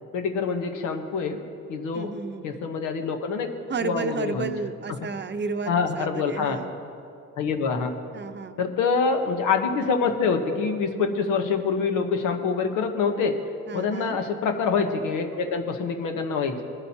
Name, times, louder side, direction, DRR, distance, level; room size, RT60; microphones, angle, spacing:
voice 1, 0.1-1.4 1.7-2.1 2.4-3.5 3.8-4.5 4.9-5.1 5.7-6.6 7.4-7.9 8.6-13.3 13.7-16.6, left 5 dB, 85° left, 5 dB, 1.1 m, -25 dB
voice 2, 1.9-2.4 3.7-6.7 8.1-8.6 13.7-14.2, right 5 dB, 35° right, 9 dB, 0.7 m, -32 dB
20.0 x 11.0 x 2.8 m, 2.6 s
cardioid pair, 75°, 30 cm